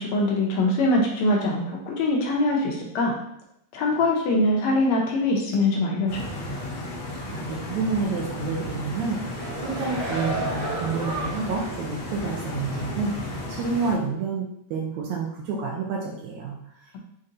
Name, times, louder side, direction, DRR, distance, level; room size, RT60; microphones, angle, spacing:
voice 1, 0.0-3.1 3.7-6.3, left 2 dB, 80° left, -1 dB, 1.6 m, -23 dB
Stream, 6.1-13.9, left 1 dB, 50° left, 1.3 m, -34 dB
voice 2, 7.3-14.4 14.7-17.0, right 4 dB, 80° right, -1 dB, 1.8 m, -29 dB
sound 1, 9.1-11.8 12.2-12.3, right 2 dB, 60° right, 1.6 m, -32 dB
5.2 x 2.7 x 2.5 m, 0.77 s
omnidirectional pair, 3.6 m